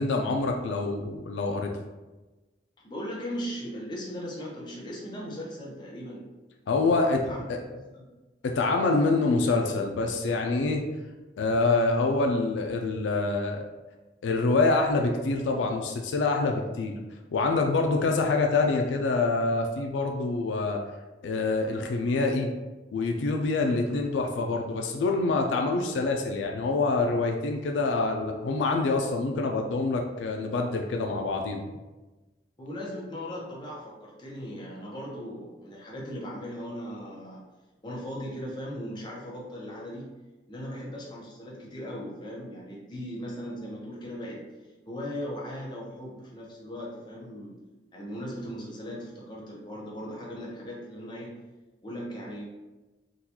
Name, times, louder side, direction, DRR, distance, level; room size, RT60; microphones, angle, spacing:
voice 1, 0.0-1.7 6.7-7.2 7.5-7.6 8.4-10.9 11.4-13.6 14.2-17.0 17.3-20.8 21.2-22.5 22.9-31.6, left 3 dB, 80° left, 2 dB, 0.3 m, -26 dB
voice 2, 2.8-6.3 6.9-7.4 7.7-8.1 32.6-37.4 37.8-40.1 40.5-44.5 44.9-47.6 47.9-51.3 51.8-52.5, equal, 25° left, -4 dB, 0.7 m, -38 dB
3.7 x 2.3 x 2.9 m, 1.2 s
head